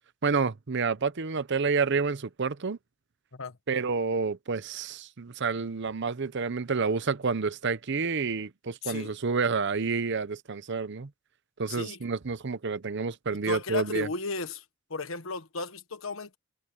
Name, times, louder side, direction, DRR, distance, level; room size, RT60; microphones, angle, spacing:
voice 1, 0.2-2.8 3.7-11.1 11.6-14.1, right 4 dB, 60° right, 0.8 m, -29 dB
voice 2, 8.8-9.1 11.7-12.0 13.3-14.6 14.9-16.4, left 3 dB, 75° left, 1.4 m, -35 dB
head